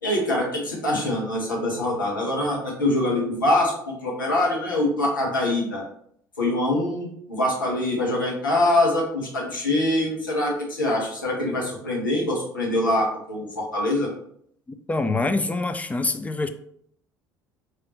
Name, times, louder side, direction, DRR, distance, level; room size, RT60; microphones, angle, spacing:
voice 1, 0.0-5.8 6.4-14.1, left 1 dB, 85° left, -2 dB, 1.2 m, -24 dB
voice 2, 14.9-16.5, left 3 dB, 15° left, 9 dB, 0.4 m, -25 dB
4.6 x 3.3 x 2.9 m, 0.67 s
figure-of-eight pair, 60°, 11 cm